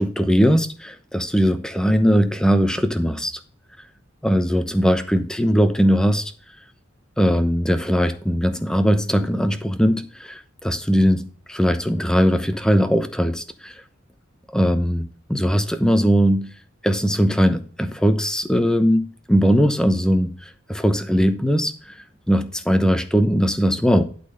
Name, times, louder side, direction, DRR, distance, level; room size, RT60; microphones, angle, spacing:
voice 1, 0.0-3.4 4.2-6.3 7.2-13.7 14.5-16.5 16.8-21.9 22.3-24.0, equal, 5° left, 0.8 m, -20 dB
11.5 x 4.2 x 5.5 m
head